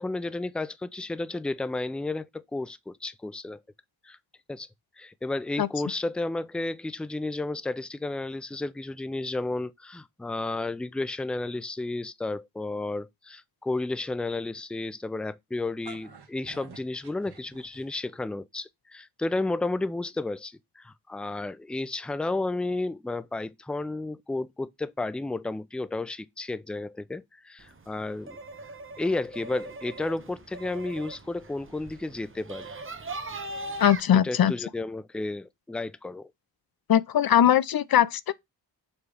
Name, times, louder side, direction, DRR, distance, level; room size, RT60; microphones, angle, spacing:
voice 1, 0.0-3.6 4.0-4.2 4.5-4.7 5.0-28.4 29.0-32.7 34.1-36.3, left 2 dB, 5° left, 0.3 m, -32 dB
sound 1, 15.6-18.2, right 3 dB, 60° right, 1.4 m, -49 dB
sound 2, 27.6-34.0, right 2 dB, 30° right, 0.9 m, -40 dB
voice 2, 33.8-34.5 36.9-38.3, left 10 dB, 55° left, 0.5 m, -21 dB
7.1 x 3.1 x 4.8 m
wide cardioid pair, 115°, 44 cm